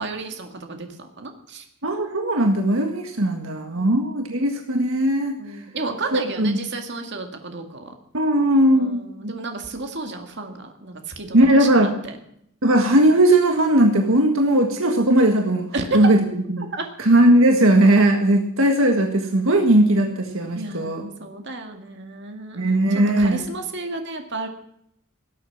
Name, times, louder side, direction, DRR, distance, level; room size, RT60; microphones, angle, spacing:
voice 1, 0.0-1.6 3.8-4.0 5.4-7.9 8.7-12.2 15.7-16.1 16.6-16.8 20.5-22.8 23.2-24.5, right 3 dB, 55° right, 4 dB, 2.0 m, -32 dB
voice 2, 1.8-5.4 6.1-6.6 8.1-9.3 11.3-11.9 12.6-16.2 16.5-16.6 17.0-21.0 22.5-23.4, right 1 dB, 70° right, 3 dB, 1.7 m, -18 dB
17.5 x 8.5 x 7.3 m, 0.73 s
head